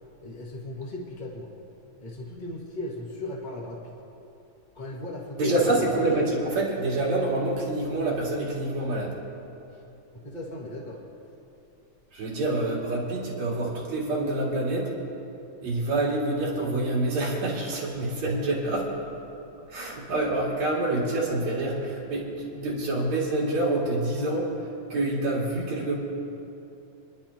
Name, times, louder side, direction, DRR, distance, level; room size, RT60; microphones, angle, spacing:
voice 1, 0.2-1.5 2.0-3.9 4.7-6.2 9.7-9.8 10.1-11.0, left 1 dB, 30° left, -3 dB, 0.8 m, -36 dB
voice 2, 5.4-9.2 12.1-14.9 15.6-18.9 19.7-26.0, right 2 dB, 55° right, -5 dB, 3.7 m, -27 dB
28.0 x 11.5 x 2.9 m, 2.9 s
omnidirectional pair, 3.8 m